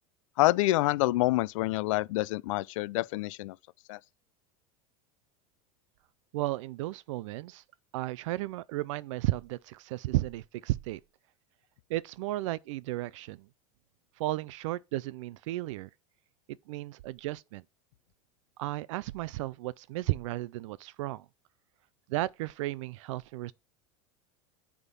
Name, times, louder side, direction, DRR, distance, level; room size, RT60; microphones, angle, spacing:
voice 1, 0.4-3.6 3.9-4.0, left 18 dB, 70° left, 0.4 m, -27 dB
voice 2, 6.3-7.6 7.9-11.0 11.9-13.5 14.2-15.9 16.7-17.6 18.6-21.3 22.1-23.5, right 17 dB, 70° right, 0.4 m, -34 dB
9.8 x 3.6 x 5.6 m
supercardioid pair, 175°, 17 cm